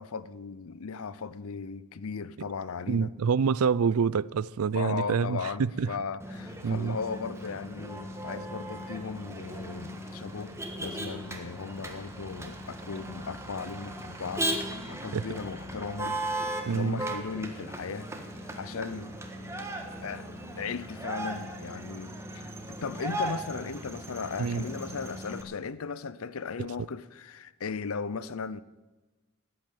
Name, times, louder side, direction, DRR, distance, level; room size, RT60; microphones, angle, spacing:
voice 1, 0.0-3.1 4.7-14.5 14.9-18.1 18.6-19.2 20.0-20.3 20.6-28.6, left 5 dB, 75° left, 0.6 m, -37 dB
voice 2, 2.9-5.9 6.6-7.0 15.1-15.2 16.7-17.0 24.4-24.7, right 6 dB, 90° right, 0.4 m, -27 dB
Motor vehicle (road), 6.2-25.4, right 1 dB, 15° right, 1.5 m, -37 dB
14.0 x 8.8 x 9.3 m
head